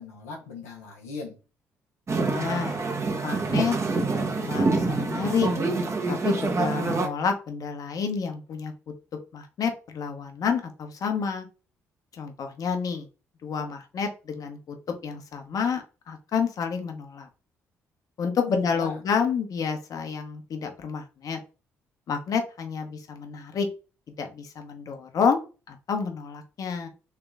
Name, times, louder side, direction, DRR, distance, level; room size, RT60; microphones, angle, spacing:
voice 1, 0.0-1.4 18.4-19.0, left 4 dB, 85° left, 0.8 m, -39 dB
sound 1, 2.1-7.1, right 3 dB, 40° right, 1.1 m, -26 dB
voice 2, 2.2-2.8 3.2-5.5 6.1-8.7 9.3-11.5 12.1-13.1 13.4-14.8 15.0-17.3 18.2-21.4 22.1-23.7 24.2-26.9, left 6 dB, 55° left, 0.9 m, -29 dB
3.3 x 2.9 x 3.6 m
hypercardioid pair, 45°, 7 cm